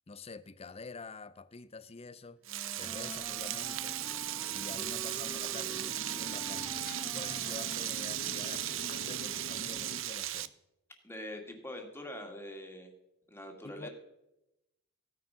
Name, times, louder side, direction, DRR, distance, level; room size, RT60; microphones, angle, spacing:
voice 1, 0.1-2.4 2.7-4.0 4.5-10.5 13.6-13.9, left 3 dB, 30° left, 0.6 m, -47 dB
Frying (food), 2.4-10.5, right 13 dB, 70° right, 0.6 m, -37 dB
Wind instrument woodwind instrument, 2.5-8.4, right 1 dB, 5° right, 0.9 m, -48 dB
Motorcycle, 2.8-10.0, left 1 dB, 50° left, 1.4 m, -47 dB
voice 2, 11.0-12.9 13.3-13.9, left 1 dB, 10° left, 2.2 m, -43 dB
15.5 x 9.6 x 5.8 m
head